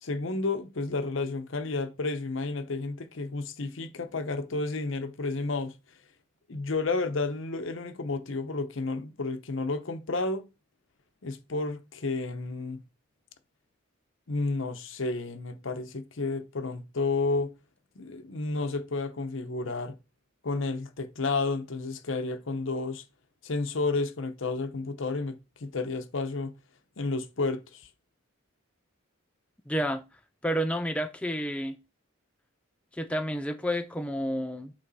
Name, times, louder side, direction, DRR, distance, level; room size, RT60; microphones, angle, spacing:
voice 1, 0.0-5.7 6.5-10.5 11.2-12.8 14.3-17.5 18.0-20.0 20.4-23.0 23.4-26.5 27.0-27.9, left 3 dB, 65° left, 0.8 m, -31 dB
voice 2, 29.7-30.0 30.4-31.8 32.9-34.7, equal, 5° left, 0.3 m, -30 dB
8.4 x 3.3 x 4.1 m
head